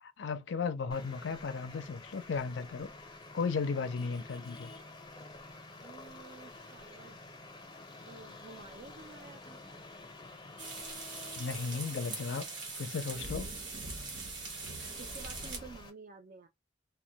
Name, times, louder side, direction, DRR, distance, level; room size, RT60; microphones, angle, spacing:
voice 1, 0.0-2.9 3.3-4.7 11.4-12.5 12.8-13.5, left 5 dB, 70° left, 0.4 m, -35 dB
Traffic noise roadway noise, 0.9-15.9, left 2 dB, 25° left, 0.6 m, -51 dB
sound 1, 1.3-3.2 3.6-4.3 4.6-4.8 5.5-5.6 5.9-6.3 6.8-6.9 7.7-7.8 8.1-9.8 10.2-10.3 10.6-11.4 12.1-12.3 12.6-15.8, right 1 dB, 60° right, 0.7 m, -48 dB
voice 2, 5.8-7.2 8.0-9.6 15.0-16.5, right 4 dB, 45° right, 0.3 m, -51 dB
sound 2, 10.6-15.6, right 3 dB, 90° right, 1.0 m, -42 dB
2.1 x 2.1 x 2.7 m
head